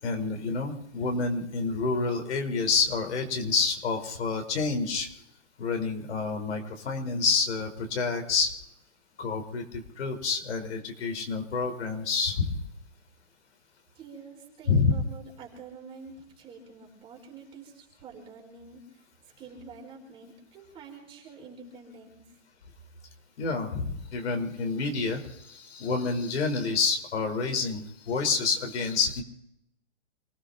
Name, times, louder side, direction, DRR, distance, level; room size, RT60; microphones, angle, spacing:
voice 1, 0.0-5.1 5.6-8.5 9.2-12.6 14.7-14.9 23.4-29.2, left 4 dB, 65° left, 3 dB, 4.8 m, -28 dB
voice 2, 13.9-19.0 19.4-22.2, right 4 dB, 15° right, -1 dB, 4.6 m, -47 dB
28.5 x 17.5 x 2.9 m, 0.77 s
hypercardioid pair, 160°, 37 cm